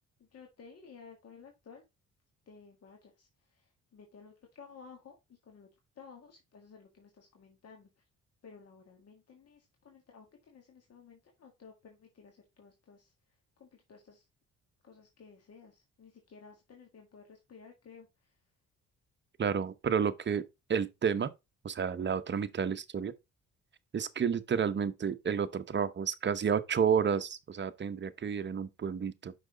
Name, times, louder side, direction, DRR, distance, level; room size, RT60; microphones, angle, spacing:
voice 1, 0.2-1.8 2.5-5.7 6.0-7.9 8.4-13.1 13.6-14.3 14.8-18.4, left 5 dB, 55° left, 1.9 m, -55 dB
voice 2, 19.4-21.3 21.6-23.1 23.9-29.3, right 7 dB, 35° right, 0.9 m, -31 dB
6.2 x 5.9 x 3.8 m
cardioid pair, 90°, 30 cm